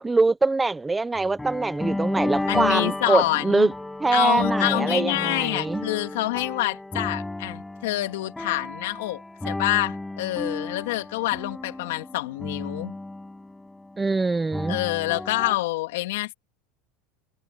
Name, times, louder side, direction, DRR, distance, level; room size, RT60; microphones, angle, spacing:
voice 1, 0.0-3.7 4.0-5.8 14.0-14.8, right 3 dB, 10° right, 0.8 m, -23 dB
sound 1, 1.2-14.0 14.5-15.6, left 2 dB, 5° left, 7.2 m, -32 dB
voice 2, 2.5-3.7 4.1-12.9 14.7-16.3, left 18 dB, 85° left, 2.8 m, -27 dB
supercardioid pair, 135°, 0 cm